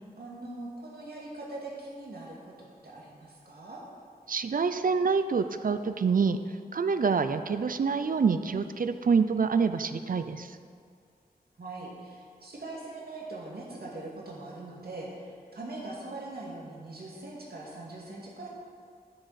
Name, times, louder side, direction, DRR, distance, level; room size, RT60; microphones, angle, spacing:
voice 1, 0.2-3.8 11.6-18.5, right 2 dB, 80° right, -4 dB, 2.1 m, -42 dB
voice 2, 4.3-6.4 6.7-10.6, right 5 dB, 60° right, 10 dB, 0.5 m, -26 dB
12.5 x 7.0 x 4.2 m, 2.2 s
wide cardioid pair, 90°, 16 cm